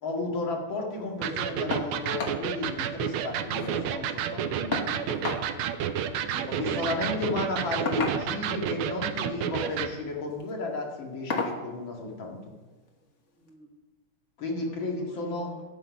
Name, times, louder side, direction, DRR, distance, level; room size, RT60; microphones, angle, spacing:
voice 1, 0.0-4.8 6.5-12.4 14.4-15.5, left 2 dB, 65° left, 0 dB, 2.7 m, -33 dB
Electric guitar, 1.2-10.0, right 9 dB, 80° right, 1.5 m, -31 dB
sound 1, 1.7-1.9 2.2-2.4 2.8-2.9 3.1-3.8 4.7-5.4 6.7-6.9 7.8-8.5 9.5-9.9 10.3-10.5 11.3-11.6 12.9-13.0 13.5-13.6, left 3 dB, 40° left, 1.4 m, -32 dB
voice 2, 5.7-7.5 13.4-13.7 14.6-15.6, right 1 dB, 5° right, -4 dB, 1.2 m, -46 dB
12.5 x 8.1 x 5.2 m, 1.2 s
omnidirectional pair, 2.3 m